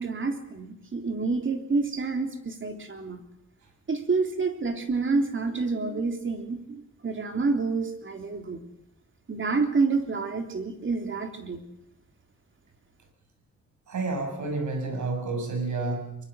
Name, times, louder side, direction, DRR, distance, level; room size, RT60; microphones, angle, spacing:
voice 1, 0.0-3.2 3.9-8.6 9.3-11.6, right 4 dB, 45° right, 5 dB, 3.5 m, -28 dB
voice 2, 13.9-16.2, right 3 dB, 80° right, 4 dB, 7.1 m, -30 dB
23.5 x 23.0 x 6.5 m, 0.83 s
cardioid pair, 100°, 29 cm